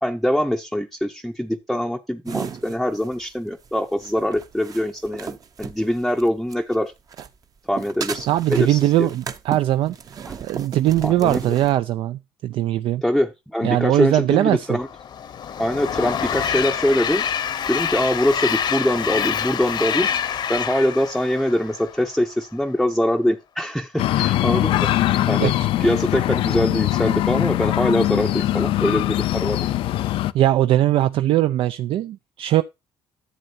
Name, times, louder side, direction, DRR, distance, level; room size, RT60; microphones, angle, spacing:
voice 1, 0.0-6.9 7.7-9.1 10.3-10.4 11.0-11.4 13.0-14.9 15.6-17.2 17.7-20.1 20.5-24.9 25.3-25.5 25.8-29.6, equal, ahead, 0.6 m, -23 dB
sound 1, 2.3-6.8 7.1-11.8, right 7 dB, 40° right, 0.8 m, -35 dB
voice 2, 8.3-10.0 10.4-13.0 13.6-14.8 25.4-25.7 30.3-32.6, right 13 dB, 75° right, 0.4 m, -20 dB
Train, 14.7-22.2, left 8 dB, 55° left, 0.8 m, -26 dB
sound 2, 24.0-30.3, left 14 dB, 80° left, 0.5 m, -21 dB
11.0 x 7.4 x 2.7 m
cardioid pair, 115°, 9 cm